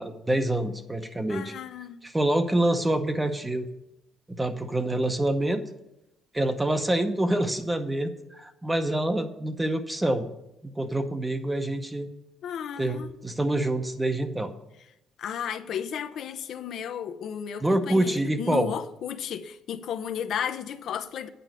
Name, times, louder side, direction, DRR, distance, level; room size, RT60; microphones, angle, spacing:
voice 1, 0.0-1.5 2.0-3.7 4.3-5.6 6.3-10.3 10.6-12.1 12.8-14.5 17.6-18.7, right 1 dB, 10° right, 8 dB, 0.7 m, -26 dB
voice 2, 1.3-2.0 12.4-13.1 15.2-21.3, left 8 dB, 60° left, 9 dB, 0.6 m, -34 dB
9.1 x 5.4 x 7.6 m, 0.88 s
cardioid pair, 135°, 0 cm